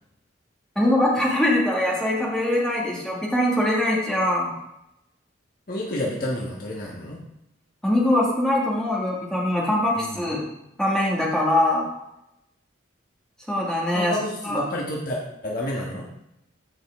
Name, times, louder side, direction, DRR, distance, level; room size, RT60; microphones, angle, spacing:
voice 1, 0.8-4.5 7.8-10.4 10.8-11.9 13.5-14.1 14.4-14.6, left 1 dB, 5° left, -4 dB, 2.1 m, -22 dB
voice 2, 5.7-7.2 10.0-10.2 13.9-16.1, left 1 dB, 45° left, -3 dB, 1.4 m, -30 dB
14.5 x 5.4 x 3.6 m, 0.84 s
head